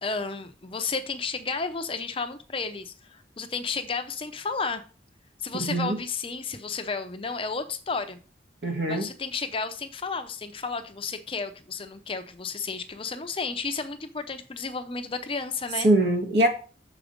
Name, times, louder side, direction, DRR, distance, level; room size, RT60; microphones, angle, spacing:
voice 1, 0.0-4.8 5.4-8.2 8.9-15.9, left 4 dB, 30° left, 0.6 m, -32 dB
voice 2, 5.5-6.0 8.6-9.1 15.8-16.5, right 1 dB, 70° right, 1.6 m, -23 dB
6.9 x 5.0 x 5.1 m
head